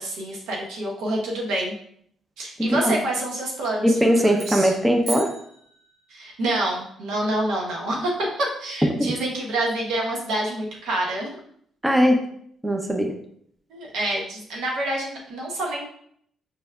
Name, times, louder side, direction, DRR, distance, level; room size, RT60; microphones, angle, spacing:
voice 1, 0.0-1.7 2.4-4.7 6.1-11.4 13.7-15.9, right 1 dB, 85° right, -2 dB, 1.1 m, -27 dB
voice 2, 2.6-3.0 3.8-5.3 11.8-12.2 12.6-13.1, equal, 10° right, 3 dB, 0.6 m, -20 dB
sound 1, 4.4-6.3, right 2 dB, 55° right, 1.6 m, -37 dB
5.2 x 3.2 x 2.3 m, 0.67 s
cardioid pair, 90°, 0 cm